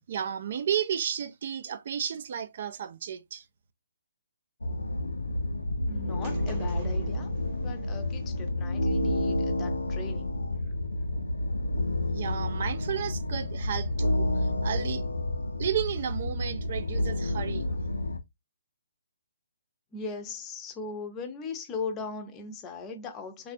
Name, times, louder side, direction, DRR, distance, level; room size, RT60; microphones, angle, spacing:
voice 1, 0.1-3.4 12.1-14.3 14.6-15.0 15.6-17.7, right 9 dB, 50° right, 0.4 m, -32 dB
sound 1, 4.6-18.2, left 1 dB, 90° left, 0.5 m, -30 dB
voice 2, 5.8-7.3 7.6-10.3 11.1-11.2 19.9-23.5, left 4 dB, 20° left, 0.6 m, -39 dB
sound 2, 6.2-8.5, right 3 dB, 35° right, 0.9 m, -46 dB
3.3 x 2.4 x 2.5 m
figure-of-eight pair, 140°, 0 cm